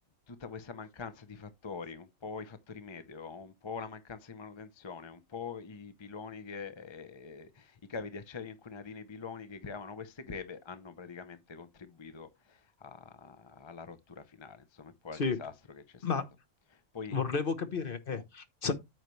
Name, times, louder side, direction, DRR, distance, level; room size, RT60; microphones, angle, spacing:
voice 1, 0.3-16.2 16.7-17.2, left 5 dB, 25° left, 0.6 m, -44 dB
voice 2, 17.1-18.7, left 5 dB, 45° left, 1.1 m, -32 dB
9.0 x 6.7 x 3.1 m
omnidirectional pair, 1.4 m